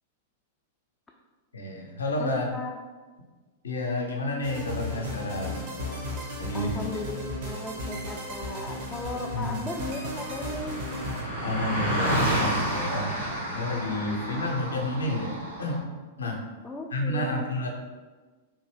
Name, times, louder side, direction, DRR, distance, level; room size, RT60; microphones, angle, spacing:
voice 1, 1.5-2.5 3.6-5.7 6.4-6.7 9.3-9.6 11.4-13.1 13.5-15.9 16.2-16.4 16.9-17.7, left 1 dB, 70° left, 1 dB, 0.6 m, -30 dB
voice 2, 2.2-2.7 6.5-10.7 14.1-14.2 16.6-17.5, left 2 dB, 10° left, -1 dB, 0.3 m, -37 dB
sound 1, 4.4-11.2, left 1 dB, 50° right, 1.0 m, -35 dB
Car passing by, 8.7-8.8 8.9-15.8, equal, 90° right, 1.4 m, -31 dB
3.5 x 2.6 x 3.3 m, 1.3 s
figure-of-eight pair, 95°, 0 cm